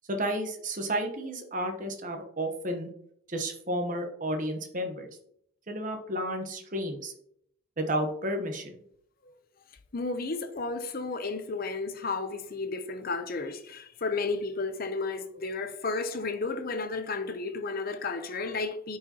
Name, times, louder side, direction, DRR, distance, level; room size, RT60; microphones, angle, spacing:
voice 1, 0.1-2.9 3.3-5.1 5.7-7.1 7.8-8.7, right 1 dB, 35° right, 1.0 m, -32 dB
voice 2, 9.9-19.0, left 3 dB, 45° left, 0.7 m, -33 dB
9.4 x 4.8 x 2.9 m
head